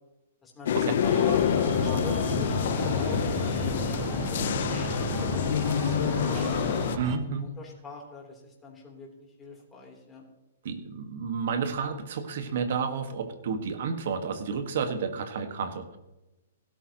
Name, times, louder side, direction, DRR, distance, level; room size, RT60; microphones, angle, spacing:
voice 1, 0.4-3.6 3.9-4.6 5.2-6.7 7.3-10.2, left 3 dB, 15° left, -2 dB, 3.6 m, -43 dB
sound 1, 0.7-7.0, left 9 dB, 65° left, 0.9 m, -27 dB
Breathing, 1.0-7.2, right 3 dB, 35° right, 1.4 m, -33 dB
voice 2, 7.0-7.5 10.6-16.0, right 5 dB, 65° right, 8 dB, 1.7 m, -31 dB
16.5 x 12.5 x 3.1 m, 1.0 s
hypercardioid pair, 145°, 0 cm